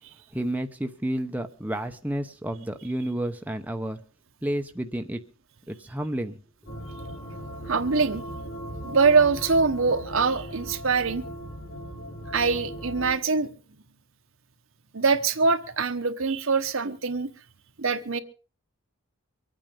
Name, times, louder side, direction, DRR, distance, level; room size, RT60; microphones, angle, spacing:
voice 1, 0.3-4.0 4.4-5.2 5.7-6.4, right 1 dB, 5° right, 5 dB, 0.8 m, -30 dB
sound 1, 6.7-13.1, equal, 55° left, 3.6 m, -38 dB
voice 2, 7.7-8.2 8.8-11.2 12.3-13.5 14.9-17.3 17.8-18.2, right 4 dB, 65° right, 8 dB, 1.2 m, -23 dB
24.5 x 9.0 x 5.2 m, 0.38 s
head